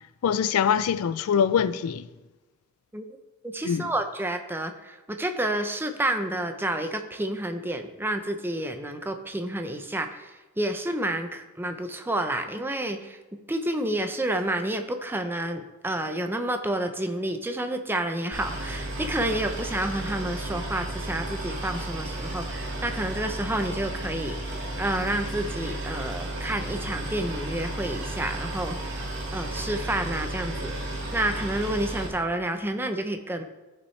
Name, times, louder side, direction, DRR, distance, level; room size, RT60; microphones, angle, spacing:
voice 1, 0.2-2.1 3.6-3.9, left 7 dB, 80° left, 0.4 m, -23 dB
voice 2, 3.4-13.2 13.5-24.4 24.8-28.9 29.3-30.8 31.1-33.4, right 1 dB, 10° right, 0.6 m, -29 dB
Boat Water vehicle, 18.3-32.1, right 1 dB, 60° right, 2.2 m, -33 dB
14.0 x 5.5 x 3.2 m
head